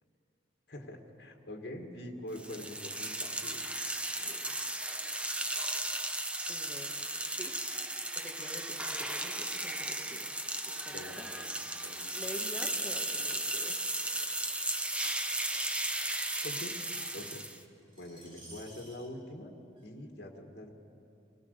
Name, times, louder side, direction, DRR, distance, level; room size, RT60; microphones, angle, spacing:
voice 1, 0.7-3.7 10.9-11.6 11.8-12.1 16.4-16.7 17.1-17.5 18.0-19.5 19.8-20.7, left 1 dB, 65° left, 3 dB, 1.9 m, -44 dB
sound 1, 2.4-17.6, right 1 dB, 5° right, 0.7 m, -35 dB
voice 2, 4.2-4.7 6.5-6.9 7.3-7.6 8.1-10.3 10.7-11.4 12.1-13.8 14.2-14.6, left 1 dB, 10° left, 0 dB, 1.7 m, -47 dB
Screech, 14.2-19.1 19.8-19.9, right 2 dB, 30° right, 3.3 m, -56 dB
24.5 x 17.0 x 6.7 m, 2.8 s
head